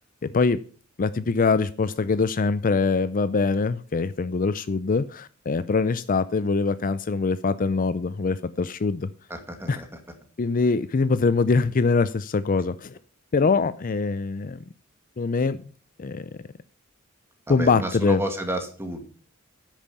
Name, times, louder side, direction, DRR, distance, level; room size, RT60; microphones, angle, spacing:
voice 1, 1.0-9.1 9.7-9.8 10.4-13.0 13.3-14.6 15.2-15.6 16.0-16.3 17.5-18.2, left 4 dB, 40° left, 0.5 m, -23 dB
voice 2, 9.3-10.0 13.4-13.6 17.5-19.0, right 1 dB, 10° right, 2.2 m, -31 dB
9.9 x 9.1 x 5.6 m
head